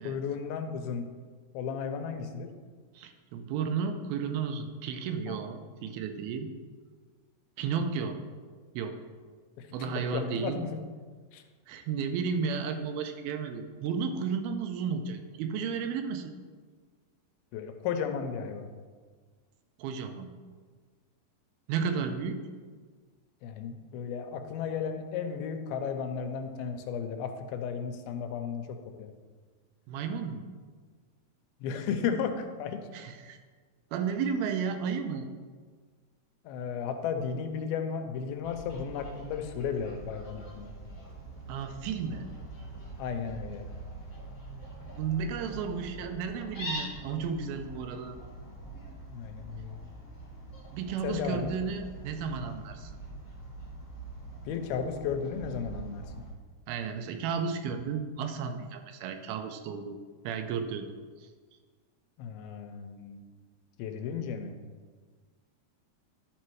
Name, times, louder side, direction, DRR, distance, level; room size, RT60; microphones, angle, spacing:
voice 1, 0.0-1.1 1.5-2.5 5.3-5.4 9.6-10.8 11.3-11.4 17.5-18.7 23.4-29.1 31.6-32.8 36.4-40.7 43.0-43.7 49.1-49.8 51.0-51.6 54.4-56.1 62.2-63.2 63.8-64.6, left 6 dB, 90° left, 6 dB, 2.6 m, -34 dB
voice 2, 3.0-6.5 7.6-8.2 8.7-9.0 9.7-10.6 11.7-16.3 19.8-20.3 21.7-22.4 29.9-30.4 32.9-33.4 33.9-35.3 41.5-42.3 44.5-44.6 44.9-48.2 50.7-52.9 56.7-60.0 60.2-60.9, right 6 dB, 85° right, 7 dB, 2.5 m, -33 dB
Fowl, 38.4-56.3, right 2 dB, 35° left, 2.1 m, -44 dB
11.5 x 4.2 x 4.6 m, 1.5 s
omnidirectional pair, 4.2 m